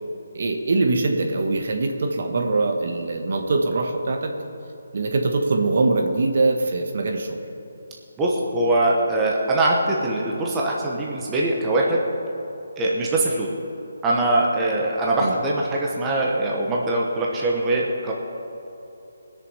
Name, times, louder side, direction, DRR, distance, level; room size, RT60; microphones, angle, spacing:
voice 1, 0.3-4.4 4.9-7.4 15.2-15.3, right 3 dB, 55° right, 3 dB, 1.4 m, -22 dB
voice 2, 8.2-12.0 12.8-13.5 14.0-18.1, right 2 dB, 10° right, -3 dB, 1.2 m, -22 dB
20.0 x 6.8 x 5.6 m, 3.0 s
hypercardioid pair, 165°, 0 cm